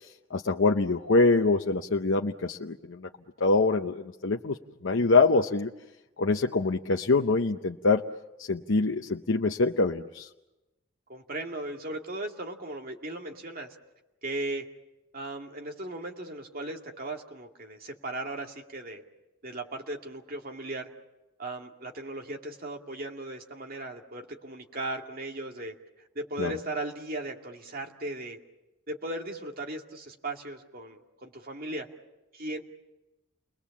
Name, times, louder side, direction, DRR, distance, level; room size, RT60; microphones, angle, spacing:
voice 1, 0.3-3.1 3.4-4.6 4.8-5.7 6.2-8.1 8.4-10.3 26.4-26.5, left 3 dB, 70° left, 3 dB, 0.8 m, -24 dB
voice 2, 11.1-13.7 14.2-14.6 15.1-19.0 19.4-20.9 21.4-25.8 26.1-28.4 28.9-31.9 32.3-32.6, right 2 dB, 45° right, 2 dB, 2.4 m, -37 dB
30.0 x 21.0 x 7.2 m, 0.99 s
head